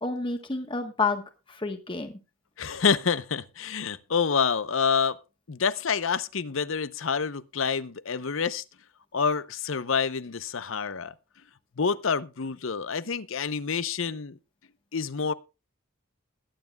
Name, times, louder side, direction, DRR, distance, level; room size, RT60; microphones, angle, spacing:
voice 1, 0.0-2.2, left 3 dB, 25° left, 1.3 m, -30 dB
voice 2, 2.6-5.2 5.5-8.6 9.1-11.1 11.8-14.4 14.9-15.3, left 6 dB, 70° left, 0.7 m, -27 dB
21.5 x 9.5 x 2.3 m
head